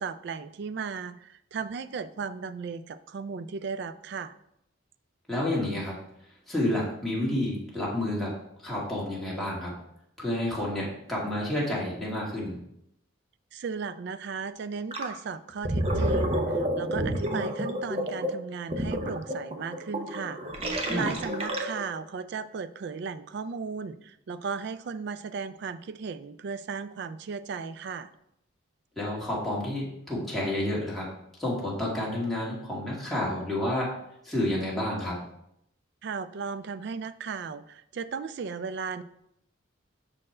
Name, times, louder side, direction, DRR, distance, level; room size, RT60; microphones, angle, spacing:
voice 1, 0.0-4.3 13.5-20.4 20.9-28.1 36.0-39.0, right 5 dB, 55° right, 14 dB, 0.3 m, -36 dB
voice 2, 5.3-6.0 6.5-8.3 8.6-9.7 10.2-12.6 20.9-21.0 29.0-31.1 31.4-33.9 34.2-35.2, left 1 dB, ahead, -6 dB, 1.8 m, -30 dB
Gurgling, 14.9-15.1 15.5-22.0, right 1 dB, 30° right, 0.7 m, -30 dB
6.2 x 4.4 x 4.3 m, 0.78 s
head